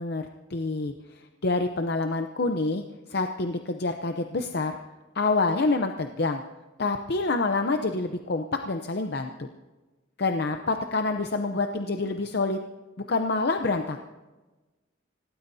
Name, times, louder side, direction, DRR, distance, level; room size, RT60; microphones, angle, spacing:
voice 1, 0.0-2.8 3.1-4.8 5.1-6.4 6.8-9.5 10.2-12.6 13.1-14.0, left 3 dB, 55° left, 5 dB, 0.7 m, -27 dB
26.5 x 18.0 x 2.8 m, 1.2 s
head